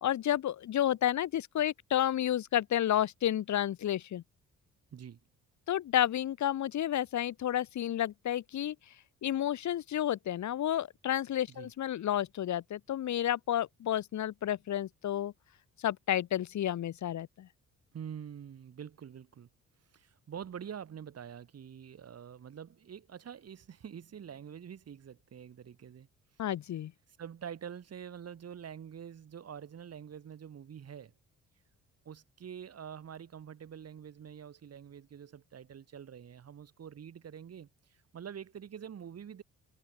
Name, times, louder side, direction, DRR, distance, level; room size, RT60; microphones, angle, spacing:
voice 1, 0.0-4.2 5.7-8.7 9.2-15.3 15.8-17.5 26.4-26.9, left 11 dB, 70° left, 2.8 m, -31 dB
voice 2, 17.9-19.5 19.9-26.1 27.2-31.1 32.0-39.4, right 8 dB, 55° right, 5.8 m, -46 dB
cardioid pair, 90°, 30 cm